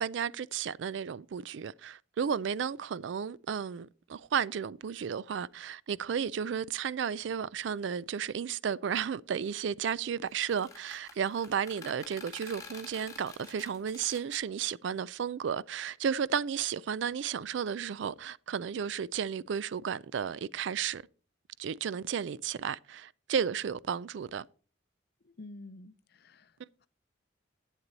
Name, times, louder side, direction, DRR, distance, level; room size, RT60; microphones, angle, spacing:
voice 1, 0.0-21.0 21.6-24.5 26.6-26.7, right 7 dB, 70° right, 0.4 m, -33 dB
sound 1, 10.3-14.4, left 4 dB, 20° left, 2.0 m, -49 dB
voice 2, 25.2-26.5, left 2 dB, 55° left, 0.6 m, -49 dB
11.0 x 8.3 x 4.0 m
head